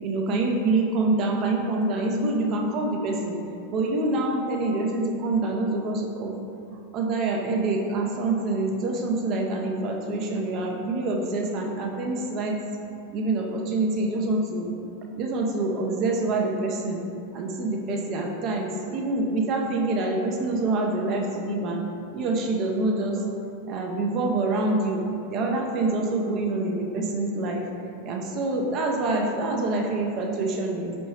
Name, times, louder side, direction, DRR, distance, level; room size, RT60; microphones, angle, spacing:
voice 1, 0.0-3.4 3.7-6.3 6.9-12.6 13.1-14.7 15.1-17.0 17.3-21.8 22.1-23.2 23.7-25.0 25.3-27.7 28.0-30.9, right 2 dB, 35° right, 1 dB, 0.5 m, -26 dB
4.5 x 2.5 x 3.1 m, 2.6 s
figure-of-eight pair, 90°, 0 cm